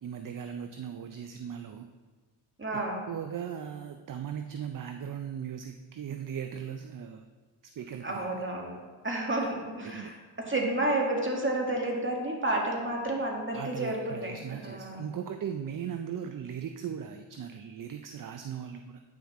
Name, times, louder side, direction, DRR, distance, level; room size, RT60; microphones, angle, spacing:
voice 1, 0.0-1.9 2.7-7.3 7.6-8.3 9.9-10.1 13.5-19.0, right 8 dB, 45° right, 7 dB, 0.5 m, -38 dB
voice 2, 2.6-3.1 8.0-8.8 9.0-15.0, right 1 dB, 25° right, -1 dB, 2.1 m, -31 dB
9.1 x 5.8 x 4.2 m, 1.4 s
cardioid pair, 55°, 48 cm